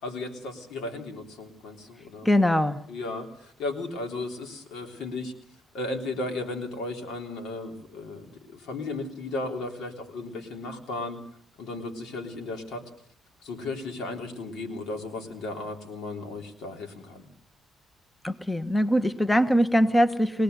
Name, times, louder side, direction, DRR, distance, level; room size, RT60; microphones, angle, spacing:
voice 1, 0.0-2.3 2.9-5.3 5.7-11.2 11.6-12.8 13.4-17.3, left 2 dB, 80° left, 3 dB, 3.6 m, -35 dB
voice 2, 2.2-2.8 18.2-20.4, equal, 10° left, 11 dB, 1.1 m, -22 dB
22.5 x 18.5 x 6.8 m, 0.64 s
cardioid pair, 90°, 0 cm